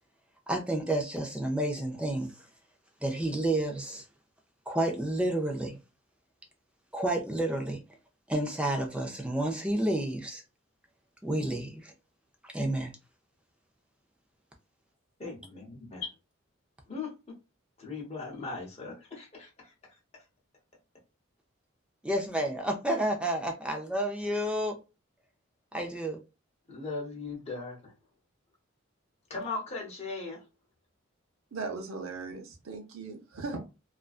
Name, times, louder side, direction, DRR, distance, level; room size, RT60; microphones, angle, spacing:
voice 1, 0.5-2.3 3.0-4.0 4.7-5.8 6.9-7.8 8.3-10.4 11.2-11.9 12.4-12.9 22.0-24.8 25.7-26.2, right 1 dB, 5° right, 0.4 m, -30 dB
voice 2, 15.2-16.1 16.9-17.1 17.8-19.7 26.7-27.9 29.3-30.4, left 4 dB, 30° left, 0.8 m, -38 dB
voice 3, 31.5-33.6, right 4 dB, 85° right, 0.6 m, -38 dB
2.4 x 2.2 x 2.3 m
head